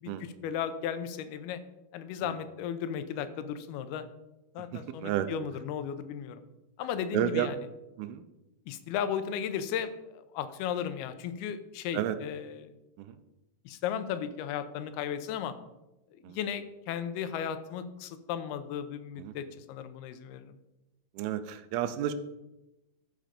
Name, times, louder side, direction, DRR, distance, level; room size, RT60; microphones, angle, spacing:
voice 1, 0.0-1.6 1.9-4.0 4.5-6.4 6.8-7.6 8.7-12.7 13.7-15.6 16.1-20.6, left 8 dB, 85° left, 11 dB, 2.6 m, -35 dB
voice 2, 4.7-5.3 7.1-7.5 8.0-8.2 11.9-12.2 13.0-13.2 16.2-16.4 19.2-19.3 21.1-22.1, right 11 dB, 85° right, 11 dB, 2.5 m, -31 dB
13.0 x 5.1 x 5.1 m, 0.97 s
omnidirectional pair, 4.4 m